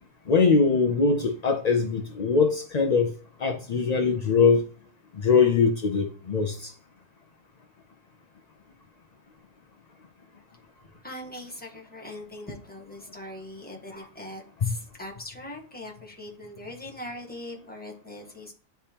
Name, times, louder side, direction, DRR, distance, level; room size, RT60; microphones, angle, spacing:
voice 1, 0.3-3.1 3.4-4.6 5.2-6.7 14.6-14.7, left 5 dB, 60° left, 0.4 m, -22 dB
voice 2, 11.0-18.5, left 1 dB, 5° left, 1.3 m, -41 dB
10.0 x 3.4 x 2.8 m
omnidirectional pair, 1.5 m